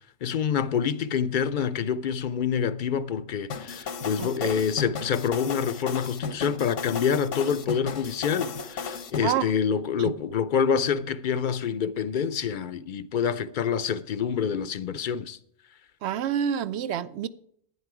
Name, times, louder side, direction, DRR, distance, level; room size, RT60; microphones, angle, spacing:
voice 1, 0.2-15.4, left 7 dB, 55° left, 0.6 m, -27 dB
sound 1, 3.5-9.2, left 5 dB, 85° left, 1.3 m, -34 dB
voice 2, 4.2-4.5 9.2-9.5 10.0-10.1 16.0-17.3, right 9 dB, 70° right, 0.8 m, -28 dB
11.5 x 9.9 x 4.8 m
omnidirectional pair, 1.2 m